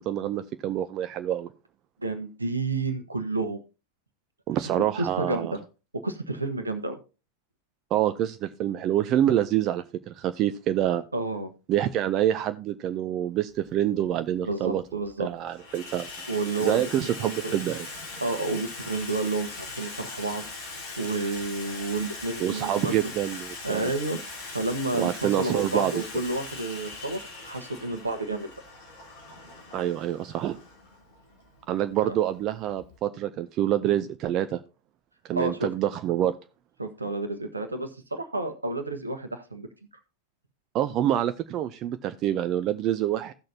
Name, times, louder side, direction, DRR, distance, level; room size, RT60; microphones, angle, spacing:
voice 1, 0.0-1.5 4.5-5.5 7.9-11.0 11.7-14.8 15.2-16.1 16.6-17.9 22.4-23.9 25.0-25.9 29.7-30.6 31.7-34.6 35.3-36.4 40.7-43.3, right 12 dB, 35° right, 10 dB, 0.6 m, -26 dB
voice 2, 2.0-3.6 5.0-5.6 5.9-7.0 11.1-11.5 14.4-15.3 16.3-16.9 17.2-17.6 18.2-23.1 23.6-28.5 32.0-32.2 35.3-35.7 36.8-39.7, right 2 dB, 80° right, 8 dB, 1.2 m, -30 dB
Water tap faucet / Sink (filling or washing), 13.6-13.7 14.7-15.1 15.4-33.0, left 3 dB, 50° left, 3.2 m, -41 dB
16.0 x 6.4 x 2.8 m, 0.31 s
figure-of-eight pair, 90°, 0 cm